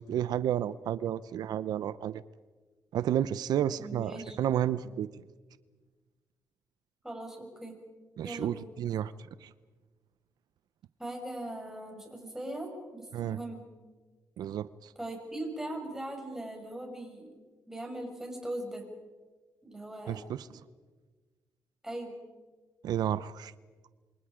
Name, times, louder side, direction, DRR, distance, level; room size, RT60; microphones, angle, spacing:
voice 1, 0.0-2.2 2.9-5.1 8.2-9.1 9.4-9.5 13.1-13.4 14.4-14.9 20.1-20.5 22.8-23.5, right 10 dB, 80° right, 16 dB, 0.6 m, -31 dB
voice 2, 3.8-4.4 7.0-7.8 8.2-8.7 11.0-13.7 14.9-17.3 17.7-18.8 19.6-20.3 21.8-22.2, right 1 dB, 5° right, 1 dB, 6.4 m, -40 dB
28.0 x 25.0 x 5.0 m, 1.3 s
cardioid pair, 105°, 7 cm